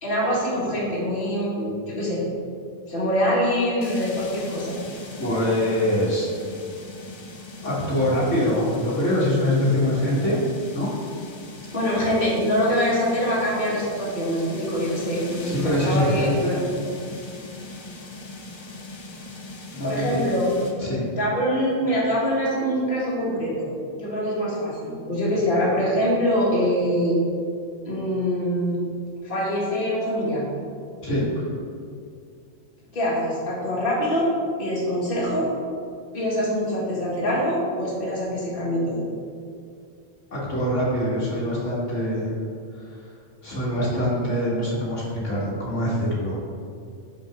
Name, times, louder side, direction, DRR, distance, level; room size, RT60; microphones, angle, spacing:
voice 1, 0.0-2.2 2.9-4.8 11.7-16.3 19.8-23.7 24.0-27.2 27.9-28.8 29.2-30.4 32.9-34.3 34.6-35.5 36.1-39.0, equal, 50° left, -7 dB, 2.0 m, -24 dB
sound 1, 3.8-20.7, left 2 dB, 30° left, 0.5 m, -39 dB
voice 2, 5.2-6.3 7.6-10.3 10.7-10.9 15.4-16.6 19.7-20.2 20.8-21.1 31.0-31.5 40.3-42.3 42.8-43.0 43.4-46.4, left 1 dB, 80° left, -7 dB, 1.9 m, -24 dB
5.7 x 4.8 x 5.9 m, 2.3 s
omnidirectional pair, 1.2 m